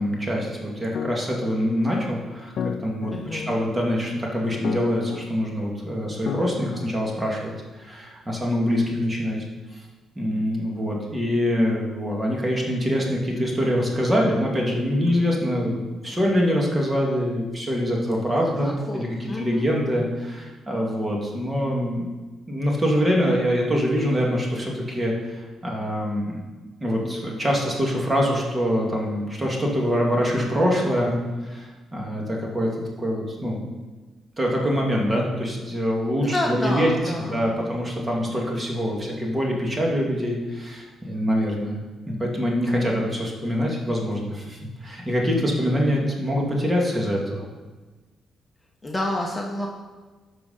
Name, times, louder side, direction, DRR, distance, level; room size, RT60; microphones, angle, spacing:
voice 1, 0.0-9.4 10.2-22.1 22.5-26.5 26.8-32.7 33.0-33.6 34.4-36.9 37.2-41.8 42.1-47.4, equal, 20° right, -1 dB, 2.3 m, -24 dB
sound 1, 0.9-7.7, left 7 dB, 65° left, 0.4 m, -35 dB
voice 2, 3.1-3.6 18.4-19.7 36.2-37.8 48.8-49.7, left 1 dB, 15° left, 0 dB, 1.1 m, -29 dB
12.0 x 4.8 x 5.7 m, 1.3 s
cardioid pair, 90°, 0 cm